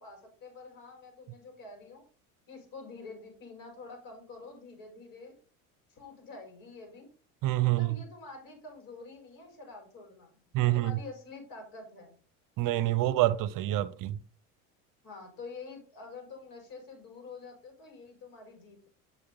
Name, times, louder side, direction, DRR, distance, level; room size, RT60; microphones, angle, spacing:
voice 1, 0.0-2.0 2.5-5.3 5.9-7.1 7.6-12.1 15.0-18.9, left 3 dB, 55° left, 5.2 m, -47 dB
voice 2, 7.4-8.0 10.5-10.9 12.6-14.2, right 16 dB, 50° right, 0.8 m, -27 dB
8.4 x 7.3 x 3.9 m
supercardioid pair, 95°, 41 cm